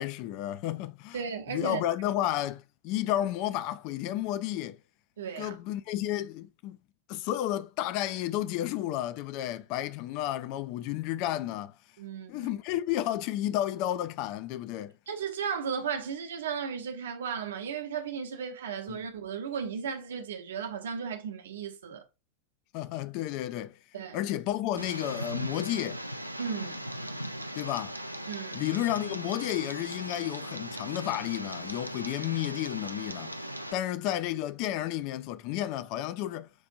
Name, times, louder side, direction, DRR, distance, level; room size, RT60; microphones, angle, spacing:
voice 1, 0.0-1.2 1.5-4.8 5.4-6.8 7.1-11.7 12.3-14.9 18.9-19.0 22.7-23.8 24.1-26.0 27.6-28.0 28.5-33.4 33.7-36.5, left 13 dB, 45° left, 0.4 m, -32 dB
voice 2, 1.1-1.8 5.2-5.6 12.0-12.5 15.1-22.0 23.9-24.2 26.4-26.8 28.3-28.6, right 6 dB, 65° right, 0.8 m, -35 dB
Tick, 24.8-33.7, equal, 90° right, 0.3 m, -38 dB
6.1 x 2.5 x 2.5 m
figure-of-eight pair, 90°, 0 cm